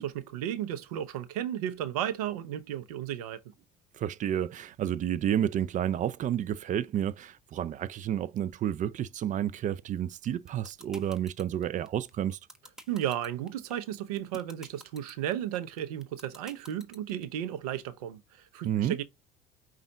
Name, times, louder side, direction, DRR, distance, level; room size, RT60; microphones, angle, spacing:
voice 1, 0.0-3.4 12.9-19.0, right 11 dB, 90° right, 0.7 m, -34 dB
voice 2, 4.0-12.4 18.6-19.0, right 10 dB, 45° right, 0.4 m, -30 dB
sound 1, 10.2-17.2, equal, 5° right, 1.1 m, -48 dB
5.4 x 2.4 x 3.8 m
supercardioid pair, 80°, 19 cm